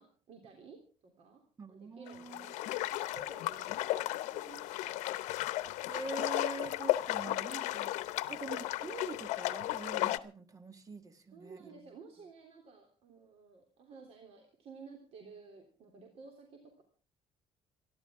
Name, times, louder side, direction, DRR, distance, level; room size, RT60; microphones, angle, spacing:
voice 1, 0.0-1.4 1.7-5.0 8.1-8.5 11.3-16.8, right 4 dB, 55° right, 3 dB, 3.2 m, -54 dB
voice 2, 1.6-2.6 5.9-11.9, right 3 dB, 30° right, 10 dB, 1.7 m, -45 dB
sound 1, 2.1-10.2, left 16 dB, 90° left, 0.8 m, -35 dB
27.5 x 11.5 x 3.6 m, 0.36 s
cardioid pair, 125°, 12 cm